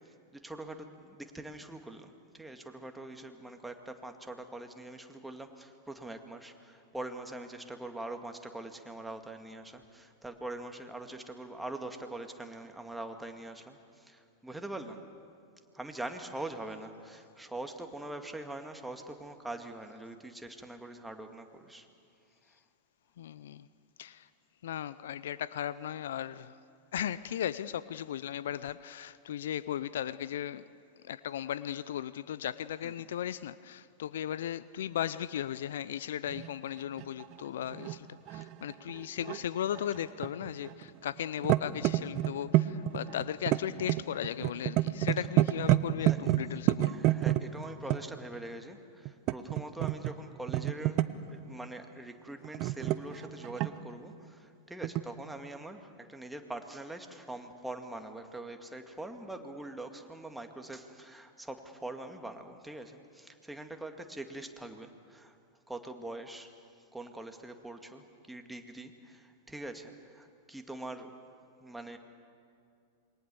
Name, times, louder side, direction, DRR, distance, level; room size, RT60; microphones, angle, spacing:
voice 1, 0.3-15.0 15.7-21.9 22.5-22.6 32.8-33.1 46.0-46.3 46.9-65.4 65.7-66.5 66.9-71.1 71.6-72.0, right 2 dB, 5° right, 5 dB, 2.2 m, -43 dB
voice 2, 23.2-23.7 24.0-24.3 24.6-26.6 26.9-30.6 31.0-47.0, left 10 dB, 65° left, 17 dB, 0.6 m, -36 dB
sound 1, 36.3-36.5 37.0-39.4 39.7-40.9 41.2-48.0 49.0-50.1 50.5-51.3 52.4-53.9 54.8-55.0, right 16 dB, 45° right, 0.8 m, -29 dB
27.5 x 22.5 x 7.0 m, 2.4 s
figure-of-eight pair, 95°, 0 cm